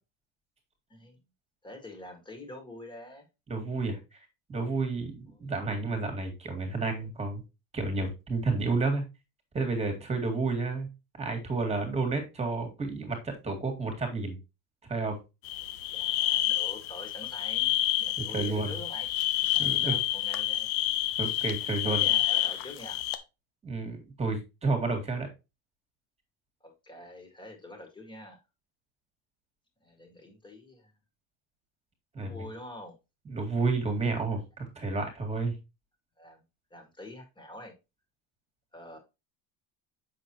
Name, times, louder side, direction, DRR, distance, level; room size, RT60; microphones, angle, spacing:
voice 1, 1.6-3.3 5.3-5.5 15.6-19.1 19.5-20.7 21.8-23.0 26.6-28.4 29.8-30.9 32.2-33.0 36.2-36.4 36.7-37.7 38.7-39.0, left 1 dB, 10° left, 3 dB, 2.0 m, -46 dB
voice 2, 3.5-4.2 4.5-7.4 7.7-9.0 9.5-10.9 11.2-14.4 14.9-15.2 18.2-18.7 19.6-19.9 21.2-22.1 23.6-25.3 32.1-32.4 33.3-35.5, right 3 dB, 15° right, 4 dB, 2.1 m, -31 dB
sound 1, 15.4-23.2, left 14 dB, 80° left, 1.0 m, -29 dB
7.5 x 6.3 x 3.0 m, 0.26 s
cardioid pair, 160°, 37 cm